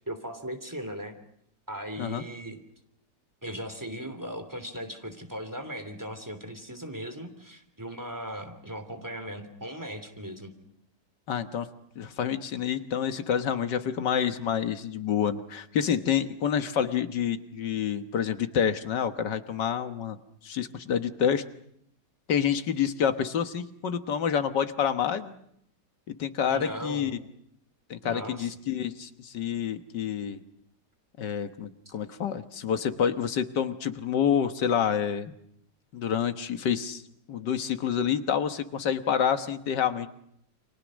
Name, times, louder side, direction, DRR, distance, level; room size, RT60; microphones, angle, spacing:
voice 1, 0.1-1.1 1.7-2.6 3.4-10.5 26.5-27.1 28.0-28.5, equal, 10° right, 7 dB, 3.0 m, -38 dB
voice 2, 11.3-11.7 12.0-20.2 20.4-21.4 22.3-25.3 26.1-27.1 27.9-30.4 31.2-35.3 35.9-37.0 37.3-40.1, left 8 dB, 85° left, 9 dB, 1.9 m, -28 dB
29.5 x 25.5 x 6.3 m, 0.72 s
omnidirectional pair, 1.8 m